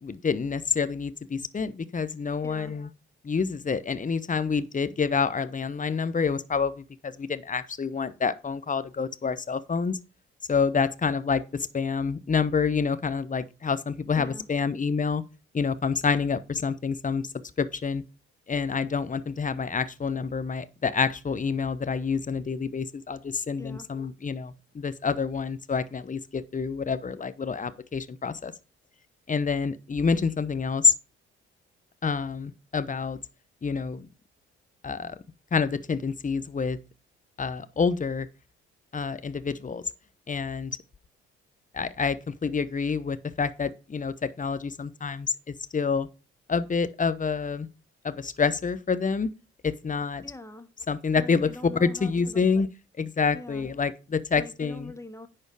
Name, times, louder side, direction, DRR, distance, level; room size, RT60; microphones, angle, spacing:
voice 1, 0.0-2.9 3.2-10.0 10.5-15.2 15.5-17.3 17.6-18.0 18.5-28.5 29.3-30.9 32.0-33.2 33.6-34.1 34.8-35.2 35.5-36.8 37.4-38.3 38.9-39.8 40.3-40.8 41.7-46.1 46.5-47.7 48.0-49.3 49.6-50.2 50.9-51.5 51.8-52.7 53.0-54.9, left 5 dB, 25° left, 0.9 m, -27 dB
voice 2, 2.4-2.7 14.2-14.5 23.6-23.9 50.2-50.7 51.2-52.5 53.3-53.7 54.4-55.3, left 1 dB, 10° left, 1.4 m, -43 dB
10.0 x 4.4 x 4.9 m
hypercardioid pair, 45°, 30 cm